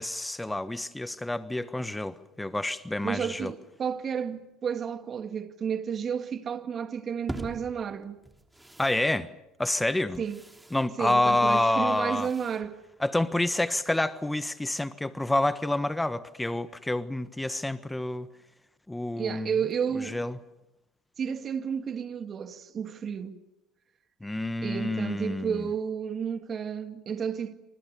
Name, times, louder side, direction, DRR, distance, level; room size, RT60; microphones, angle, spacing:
voice 1, 0.0-3.5 8.8-9.3 9.6-10.2 10.7-12.3 13.0-18.3 18.9-19.6 20.1-20.4 24.2-25.6, left 1 dB, 10° left, 1.3 m, -28 dB
voice 2, 3.0-8.2 10.2-10.5 11.0-12.8 19.2-20.2 21.2-23.4 24.6-27.5, right 7 dB, 40° right, 2.1 m, -32 dB
sound 1, 7.3-13.5, right 1 dB, 10° right, 3.2 m, -45 dB
27.5 x 27.0 x 7.0 m
hypercardioid pair, 75°, 0 cm